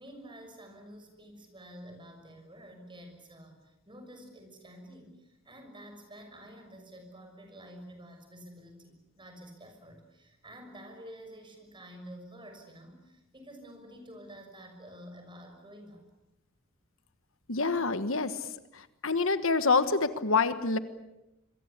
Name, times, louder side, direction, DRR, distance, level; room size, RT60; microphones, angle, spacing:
voice 1, 0.0-16.0, equal, 25° right, 5 dB, 6.3 m, -49 dB
voice 2, 17.5-18.5 18.7-20.8, left 4 dB, 65° left, 11 dB, 1.5 m, -27 dB
26.5 x 22.5 x 8.4 m, 0.92 s
head